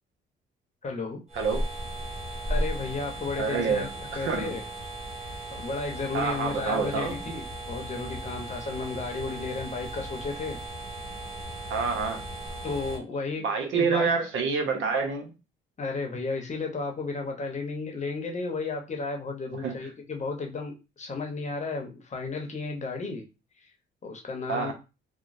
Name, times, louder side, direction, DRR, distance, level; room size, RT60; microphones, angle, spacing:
voice 1, 0.8-1.2 2.5-3.9 4.1-4.6 5.2-10.6 12.6-13.4 13.7-14.1 15.8-23.3 24.0-24.7, left 3 dB, 35° left, 2 dB, 0.8 m, -33 dB
sound 1, 1.3-13.0, right 1 dB, 30° right, 1.6 m, -36 dB
voice 2, 3.4-4.6 6.1-7.2 11.7-12.2 13.4-15.3 19.6-19.8 24.5-24.7, right 5 dB, 75° right, 4 dB, 0.8 m, -27 dB
3.0 x 2.1 x 2.5 m, 0.28 s
cardioid pair, 90°, 20 cm